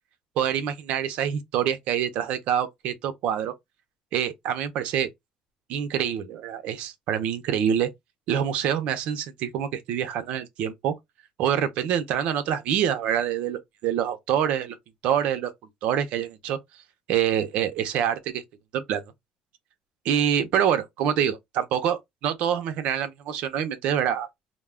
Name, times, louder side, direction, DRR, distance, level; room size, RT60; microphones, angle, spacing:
voice 1, 0.4-3.5 4.1-5.1 5.7-7.9 8.3-10.9 11.4-14.8 15.0-15.5 15.8-16.6 17.1-18.4 18.7-19.0 20.0-24.3, right 9 dB, 75° right, 0.5 m, -26 dB
2.2 x 2.1 x 3.3 m
cardioid pair, 130°, 2 cm